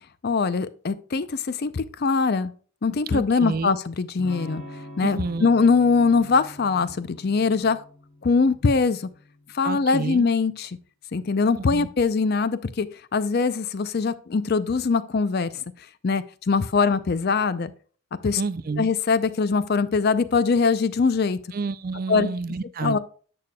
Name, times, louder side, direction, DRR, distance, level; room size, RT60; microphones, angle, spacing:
voice 1, 0.2-2.5 2.8-4.6 5.0-7.8 8.2-9.0 9.5-10.8 11.1-12.9 13.1-15.6 16.0-17.7 18.2-18.4 18.8-21.4 22.1-22.3 22.8-23.0, left 4 dB, 45° left, 0.4 m, -22 dB
voice 2, 3.1-3.8 5.0-5.5 9.6-10.3 11.7-11.9 18.4-18.9 21.5-23.0, right 4 dB, 40° right, 0.4 m, -29 dB
Electric guitar / Strum, 4.2-9.9, left 1 dB, 75° left, 3.1 m, -44 dB
10.5 x 6.7 x 2.2 m
head